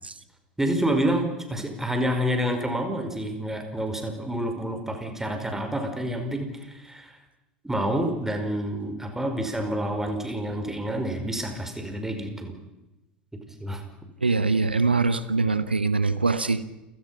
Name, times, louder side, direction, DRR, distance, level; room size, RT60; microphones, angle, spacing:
voice 1, 0.6-7.1 7.6-12.6 13.6-13.8, equal, 5° right, 5 dB, 5.1 m, -28 dB
voice 2, 14.2-16.6, right 4 dB, 85° right, 14 dB, 1.1 m, -23 dB
29.0 x 17.5 x 5.8 m, 0.98 s
figure-of-eight pair, 75°, 5 cm